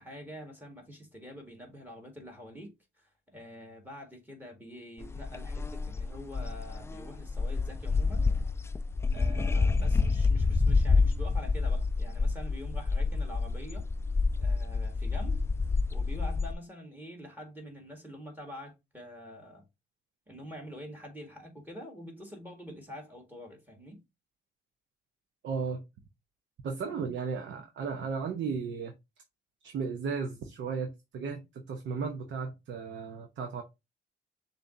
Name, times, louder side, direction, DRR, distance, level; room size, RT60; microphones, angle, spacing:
voice 1, 0.0-8.3 9.1-13.8 14.4-15.5 15.9-19.6 20.3-24.0 26.8-26.9, equal, 10° right, 1.7 m, -46 dB
sound 1, 5.0-16.5, left 4 dB, 15° left, 0.3 m, -28 dB
voice 2, 25.4-25.8 26.6-28.9 29.6-33.6, right 5 dB, 65° right, 0.8 m, -35 dB
6.6 x 2.8 x 2.6 m
cardioid pair, 90°, 20 cm